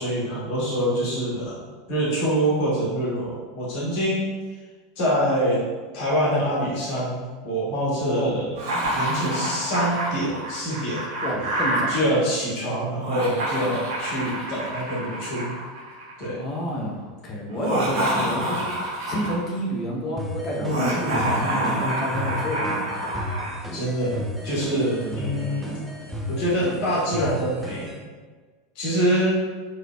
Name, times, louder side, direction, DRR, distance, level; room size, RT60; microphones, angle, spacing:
voice 1, 0.0-4.4 4.9-5.6 5.9-8.3 8.8-11.1 11.9-15.6 16.2-16.4 23.7-25.8 26.3-28.1 28.7-29.4, equal, 50° left, -7 dB, 1.5 m, -25 dB
Laughter, 8.6-12.0 12.9-16.2 17.5-19.5 20.6-23.5, right 1 dB, 55° right, 1.1 m, -27 dB
voice 2, 11.2-12.0 16.3-23.1 25.0-25.7, equal, 35° left, -1 dB, 0.7 m, -30 dB
sound 1, 20.2-28.0, equal, ahead, 0.5 m, -34 dB
3.7 x 3.1 x 2.2 m, 1.4 s
figure-of-eight pair, 80°, 0 cm